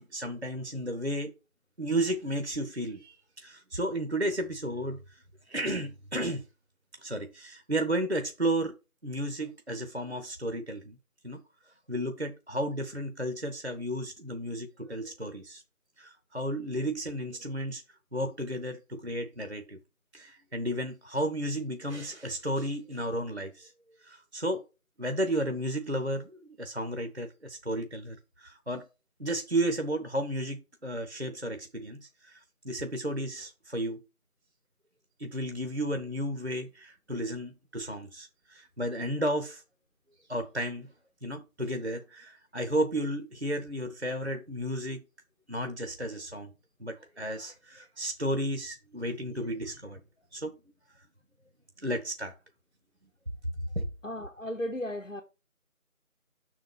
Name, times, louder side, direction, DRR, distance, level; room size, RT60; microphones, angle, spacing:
voice 1, 0.0-1.3 1.8-6.4 6.9-8.8 9.0-11.0 11.2-11.4 11.9-15.6 16.0-17.8 18.1-19.8 20.1-23.7 24.0-24.7 25.0-28.9 29.2-34.0 35.2-39.6 40.3-40.9 41.2-45.0 45.5-46.5 46.8-50.0 50.3-50.6 51.8-52.3 53.7-53.9, right 1 dB, 50° right, 0.7 m, -33 dB
voice 2, 54.0-55.2, left 1 dB, 60° left, 1.0 m, -35 dB
6.2 x 3.9 x 6.0 m
figure-of-eight pair, 180°, 44 cm